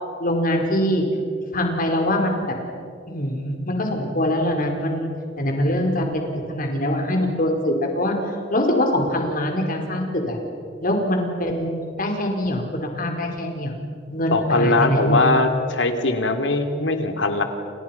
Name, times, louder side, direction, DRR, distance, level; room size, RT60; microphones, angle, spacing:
voice 1, 0.2-1.0 1.5-2.5 3.1-5.1 5.4-8.2 8.5-10.4 10.8-13.7 14.1-15.2, left 1 dB, 50° left, 2 dB, 4.8 m, -23 dB
voice 2, 14.3-17.4, left 2 dB, 80° left, 6 dB, 2.9 m, -20 dB
29.5 x 29.0 x 6.0 m, 2.4 s
head